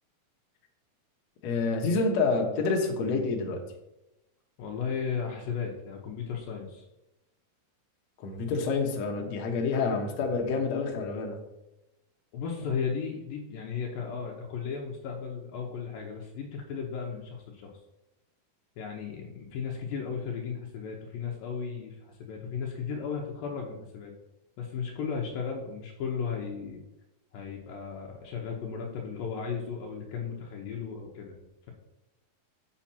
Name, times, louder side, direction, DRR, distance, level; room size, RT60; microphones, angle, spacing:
voice 1, 1.4-3.6 8.2-11.4, left 4 dB, 60° left, 1 dB, 2.0 m, -28 dB
voice 2, 4.6-6.9 9.2-9.3 12.3-17.7 18.8-24.1 24.6-26.8 27.3-31.7, left 6 dB, 80° left, 0 dB, 2.5 m, -35 dB
7.3 x 6.3 x 4.3 m, 0.95 s
omnidirectional pair, 4.2 m